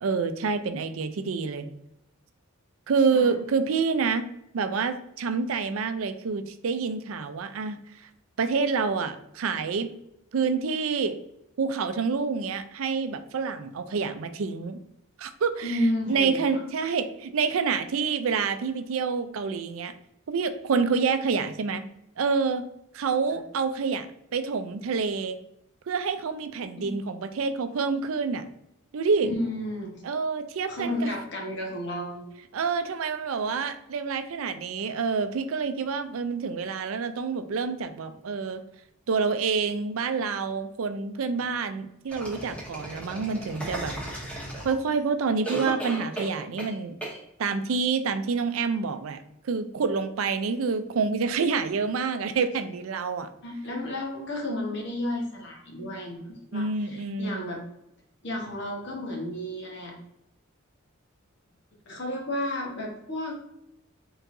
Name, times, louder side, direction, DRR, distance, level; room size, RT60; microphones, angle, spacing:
voice 1, 0.0-1.7 2.9-4.3 4.5-7.8 8.4-9.9 10.3-11.2 11.6-14.8 15.2-15.7 16.1-19.9 20.3-21.9 22.2-22.7 22.9-24.1 24.3-25.4 25.9-28.4 28.9-29.3 30.0-31.1 32.5-38.6 39.1-43.9 44.6-47.0 47.4-53.3 56.5-57.5, right 5 dB, 75° right, 10 dB, 0.4 m, -27 dB
voice 2, 15.6-16.9 26.8-26.9 29.2-30.0 30.7-32.3 53.4-57.6 58.2-59.9 61.9-63.3, left 1 dB, 55° left, 0 dB, 1.2 m, -32 dB
sound 1, 42.1-45.0 45.4-46.7 47.0-47.2, right 1 dB, 5° left, 1.2 m, -35 dB
4.5 x 3.9 x 2.6 m, 0.81 s
head